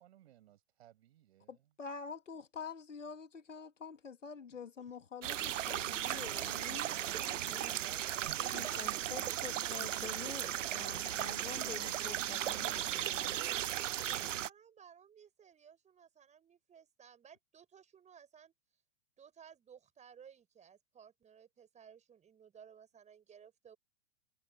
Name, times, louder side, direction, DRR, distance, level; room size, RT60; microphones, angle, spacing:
voice 1, 0.0-1.7 6.2-9.9, right 13 dB, 60° right, 6.2 m, -60 dB
voice 2, 1.5-7.7 8.5-13.4 14.1-14.3, left 6 dB, 80° left, 1.7 m, -47 dB
sound 1, 5.2-14.5, right 12 dB, 80° right, 0.5 m, -36 dB
voice 3, 13.1-18.5 19.2-23.8, right 8 dB, 20° right, 6.0 m, -58 dB
figure-of-eight pair, 105°, 37 cm